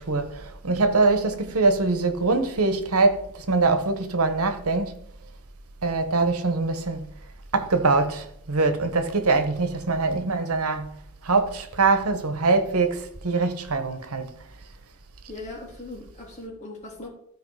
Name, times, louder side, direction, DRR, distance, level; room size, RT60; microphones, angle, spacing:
voice 1, 0.0-4.9 5.8-7.1 7.5-10.9 11.2-14.5, right 3 dB, 90° right, 1.1 m, -23 dB
voice 2, 15.3-17.1, left 2 dB, 35° left, 3.5 m, -39 dB
13.5 x 5.0 x 4.8 m
head